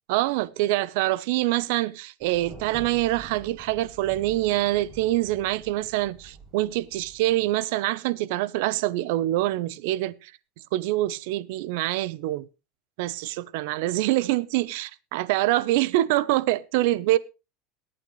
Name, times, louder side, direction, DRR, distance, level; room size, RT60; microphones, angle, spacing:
voice 1, 0.1-10.3 10.7-12.5 13.0-17.2, right 16 dB, 75° right, 0.8 m, -25 dB
Thunder, 2.2-7.6, right 3 dB, 15° right, 7.2 m, -47 dB
22.0 x 9.0 x 3.2 m
supercardioid pair, 125°, 0 cm